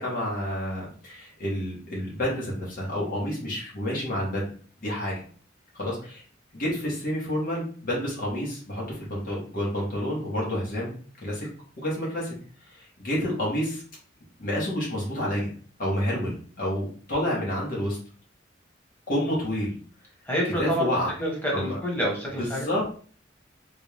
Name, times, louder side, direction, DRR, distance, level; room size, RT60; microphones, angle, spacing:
voice 1, 0.0-4.4 4.8-5.1 5.7-6.2 6.5-11.5 11.8-12.4 12.7-13.8 14.4-15.5 15.8-18.0 19.1-19.7 20.6-21.1 21.5-21.8 22.4-22.9, equal, 50° left, -5 dB, 1.5 m, -29 dB
voice 2, 20.3-20.9 21.2-22.7, equal, 10° left, -3 dB, 1.3 m, -27 dB
3.9 x 2.4 x 3.4 m, 0.43 s
head